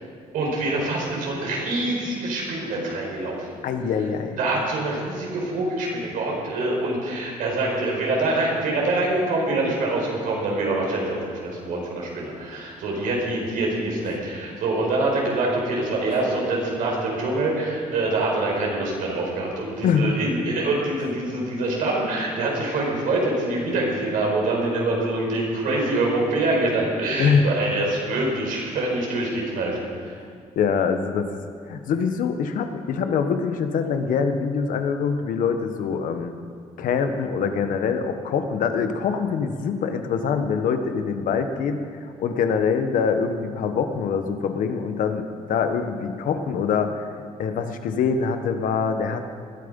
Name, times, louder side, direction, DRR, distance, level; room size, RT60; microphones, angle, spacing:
voice 1, 0.3-3.5 4.4-29.8 30.0-30.1, right 2 dB, 85° right, -2 dB, 5.0 m, -25 dB
voice 2, 3.6-4.4 16.1-16.2 19.8-20.2 27.2-27.5 30.5-31.3 31.7-36.3 36.8-41.9 42.2-47.0 47.4-49.2, left 6 dB, 75° left, 7 dB, 1.3 m, -24 dB
20.0 x 12.5 x 5.4 m, 2.1 s
cardioid pair, 100°, 14 cm